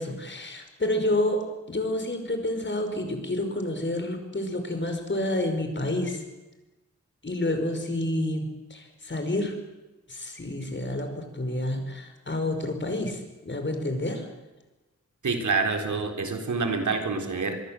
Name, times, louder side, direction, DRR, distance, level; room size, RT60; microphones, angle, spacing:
voice 1, 0.0-6.2 7.2-9.6 10.1-14.3, left 1 dB, 40° left, 6 dB, 5.3 m, -29 dB
voice 2, 15.2-17.5, right 4 dB, 85° right, 5 dB, 3.7 m, -27 dB
25.0 x 22.5 x 7.7 m, 1.1 s
wide cardioid pair, 95°, 29 cm